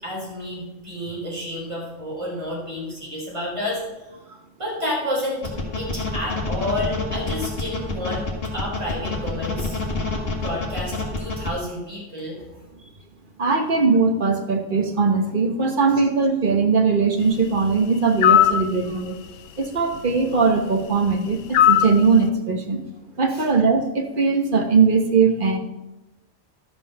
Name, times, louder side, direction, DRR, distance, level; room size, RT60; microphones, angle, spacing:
voice 1, 0.0-3.8 4.6-5.4 5.8-8.2 8.5-9.8 10.3-12.4 23.3-23.4, left 1 dB, 25° right, -4 dB, 3.7 m, -30 dB
sound 1, 5.4-11.5, left 3 dB, 50° left, 1.9 m, -27 dB
voice 2, 13.4-19.2 19.6-22.8 23.2-25.6, right 4 dB, 40° right, 5 dB, 1.2 m, -20 dB
sound 2, 18.2-18.6 21.5-22.0, left 11 dB, 75° left, 0.9 m, -15 dB
12.0 x 5.6 x 6.5 m, 1.0 s
omnidirectional pair, 1.4 m